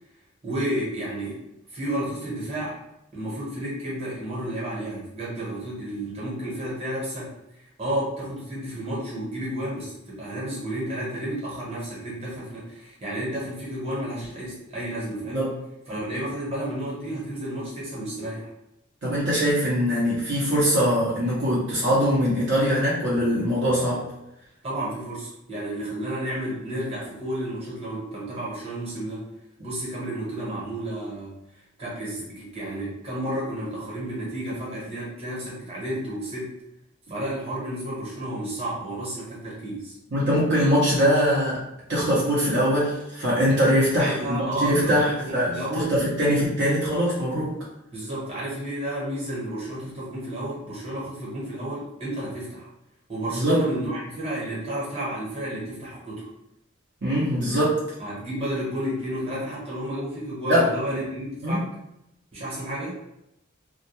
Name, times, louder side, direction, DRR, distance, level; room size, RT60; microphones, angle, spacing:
voice 1, 0.4-1.4 1.7-2.8 3.1-7.3 7.6-15.4 15.9-18.5 24.6-29.3 29.6-31.4 31.8-36.6 37.1-40.0 44.0-45.9 47.9-52.7 53.1-56.3 58.0-61.7 62.3-62.9, right 1 dB, 30° right, -6 dB, 1.0 m, -31 dB
voice 2, 19.0-24.1 40.1-41.6 41.9-47.6 53.3-53.6 57.0-57.8 60.5-60.7 61.4-61.6, equal, 60° right, -7 dB, 0.7 m, -22 dB
2.2 x 2.2 x 2.8 m, 0.84 s
head